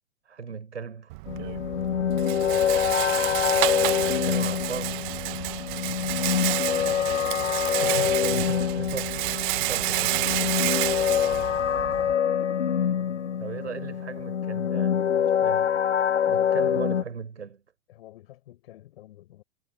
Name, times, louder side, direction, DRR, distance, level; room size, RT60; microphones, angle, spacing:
voice 1, 0.2-1.2 3.9-5.0 7.6-10.6 13.4-15.8 16.3-17.6, right 6 dB, 80° right, 4.9 m, -37 dB
Rattle, 1.1-12.1, right 24 dB, 45° right, 1.0 m, -30 dB
sound 1, 1.3-17.0, left 8 dB, 85° left, 0.9 m, -25 dB
voice 2, 6.9-8.2 13.3-13.4 17.9-19.4, left 14 dB, 60° left, 6.5 m, -51 dB
figure-of-eight pair, 100°, 34 cm